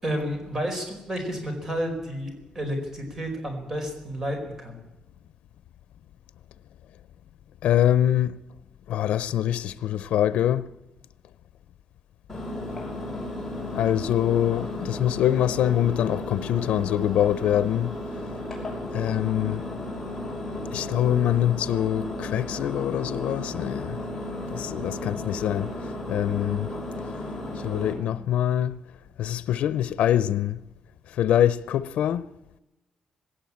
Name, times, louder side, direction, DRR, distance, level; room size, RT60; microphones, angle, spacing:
voice 1, 0.0-4.8, equal, 25° right, 4.8 m, -31 dB
voice 2, 7.6-8.3 8.9-10.6 13.7-17.9 18.9-19.6 20.7-24.0 24.5-25.7 26.1-26.7 27.6-28.7 29.2-30.6 31.2-32.3, left 11 dB, 80° left, 0.6 m, -24 dB
Engine, 12.3-27.9, left 1 dB, 10° left, 6.2 m, -34 dB
18.5 x 17.0 x 8.7 m
cardioid pair, 180°, 2 cm